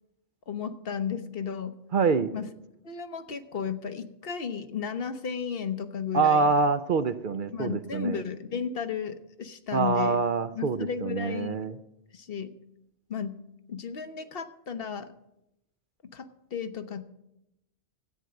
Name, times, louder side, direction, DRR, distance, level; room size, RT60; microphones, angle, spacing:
voice 1, 0.5-1.7 2.3-2.5 2.8-6.5 7.5-10.2 10.5-11.6 12.1-12.5 13.1-13.4 13.7-15.1 16.1-17.0, left 6 dB, 60° left, 10 dB, 1.1 m, -34 dB
voice 2, 1.9-2.3 6.1-8.2 9.7-11.7, right 4 dB, 55° right, 12 dB, 0.7 m, -25 dB
13.5 x 9.1 x 7.6 m, 0.86 s
omnidirectional pair, 1.2 m